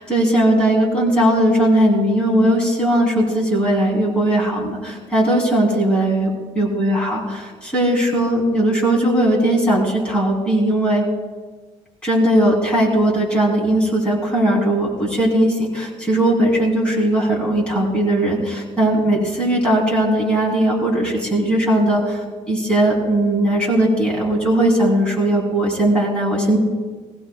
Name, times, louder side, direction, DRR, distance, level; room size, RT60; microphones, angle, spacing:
voice 1, 0.0-6.3 6.5-7.2 7.6-11.0 12.0-26.6, right 1 dB, 10° left, -5 dB, 3.1 m, -18 dB
22.5 x 16.0 x 2.3 m, 1.4 s
cardioid pair, 175°, 13 cm